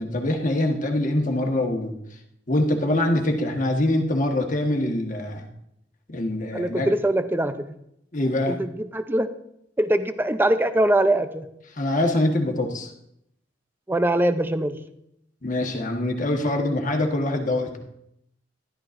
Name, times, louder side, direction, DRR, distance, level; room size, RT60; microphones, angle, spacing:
voice 1, 0.0-1.9 2.5-5.5 6.1-6.9 8.1-8.6 11.7-12.9 15.4-17.8, left 1 dB, 45° left, 3 dB, 1.4 m, -24 dB
voice 2, 6.5-7.7 8.5-9.3 9.8-11.5 13.9-14.8, right 1 dB, 10° right, 10 dB, 0.5 m, -22 dB
12.5 x 12.0 x 2.6 m, 0.77 s
head